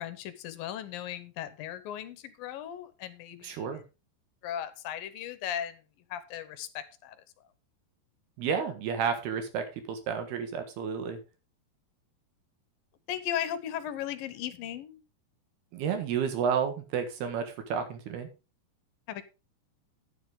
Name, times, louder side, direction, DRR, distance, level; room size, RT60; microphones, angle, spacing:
voice 1, 0.0-3.5 4.4-5.8 6.1-7.2 13.1-15.0 19.1-19.2, left 10 dB, 70° left, 12 dB, 2.4 m, -37 dB
voice 2, 3.4-3.8 8.4-11.2 15.7-18.3, right 7 dB, 75° right, 7 dB, 3.4 m, -31 dB
10.5 x 9.7 x 3.7 m, 0.30 s
omnidirectional pair, 4.8 m